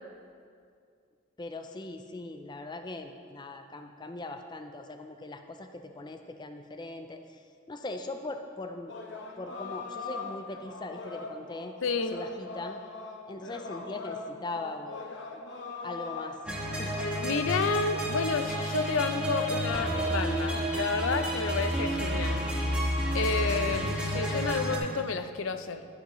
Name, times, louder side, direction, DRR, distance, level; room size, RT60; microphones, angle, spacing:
voice 1, 1.4-7.4 7.7-8.9 9.4-11.7 12.1-12.8 13.3-15.0 15.3-15.4 15.8-16.4 16.8-17.0, left 2 dB, 20° left, 6 dB, 0.4 m, -40 dB
sound 1, 8.9-20.6, left 3 dB, 60° left, 0.9 m, -41 dB
voice 2, 11.8-12.2 17.2-22.4 23.1-25.9, left 4 dB, 80° left, 10 dB, 0.5 m, -30 dB
sound 2, 16.4-24.8, equal, 5° right, 1.3 m, -30 dB
11.5 x 10.5 x 3.1 m, 2.2 s
head